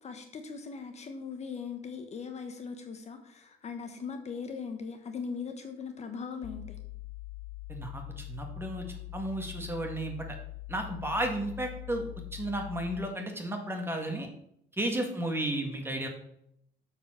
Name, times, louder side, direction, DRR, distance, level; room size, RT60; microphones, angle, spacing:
voice 1, 0.0-6.8 15.0-15.1, left 5 dB, 40° left, 6 dB, 1.2 m, -40 dB
sound 1, 6.4-13.2, left 19 dB, 60° left, 0.6 m, -43 dB
voice 2, 7.7-10.2 10.7-12.0 12.3-14.3 14.8-16.1, right 1 dB, 15° right, 3 dB, 1.9 m, -33 dB
7.9 x 4.8 x 6.3 m, 0.73 s
cardioid pair, 110°, 17 cm